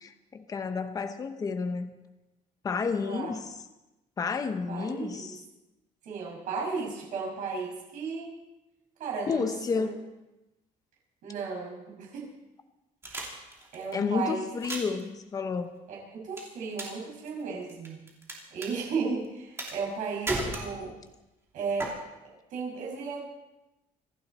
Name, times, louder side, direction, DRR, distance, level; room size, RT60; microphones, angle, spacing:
voice 1, 0.0-1.9 2.6-3.5 4.2-5.4 9.3-10.0 13.9-15.7, left 5 dB, 25° left, 8 dB, 0.9 m, -31 dB
voice 2, 4.7-5.4 6.0-8.3 9.0-9.9 11.2-12.3 13.7-14.5 15.9-18.0 18.5-21.0 21.5-21.9 22.5-23.2, right 4 dB, 60° right, -1 dB, 5.9 m, -34 dB
sound 1, 13.0-13.9 14.5-15.0 16.4-17.0 17.3-18.3 18.6-18.7 19.6-20.0 20.3-21.1 21.8-21.9, right 2 dB, 15° right, 3.0 m, -34 dB
26.5 x 11.5 x 4.2 m, 1.0 s
cardioid pair, 175°, 15 cm